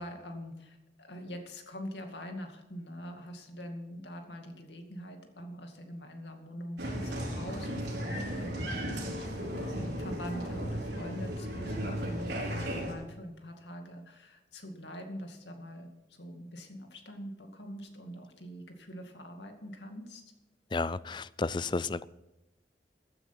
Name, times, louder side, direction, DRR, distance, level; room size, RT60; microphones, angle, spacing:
voice 1, 0.0-20.2, equal, 85° left, 2.3 m, -44 dB
Applause, 6.8-12.9, equal, 75° right, 4.4 m, -35 dB
voice 2, 20.7-22.1, left 3 dB, 25° left, 0.4 m, -32 dB
15.0 x 9.9 x 5.9 m
head